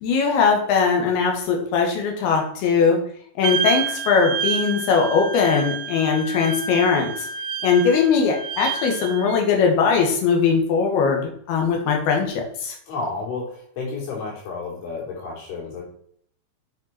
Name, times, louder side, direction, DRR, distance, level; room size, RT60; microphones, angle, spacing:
voice 1, 0.0-3.0 3.4-7.3 7.6-12.8, left 5 dB, 60° left, 2 dB, 3.5 m, -20 dB
Wind instrument woodwind instrument, 3.4-9.4, right 6 dB, 80° right, 2.6 m, -29 dB
voice 2, 12.9-13.5 13.8-15.8, left 3 dB, 85° left, -3 dB, 5.7 m, -31 dB
8.3 x 6.9 x 4.4 m, 0.64 s
omnidirectional pair, 5.4 m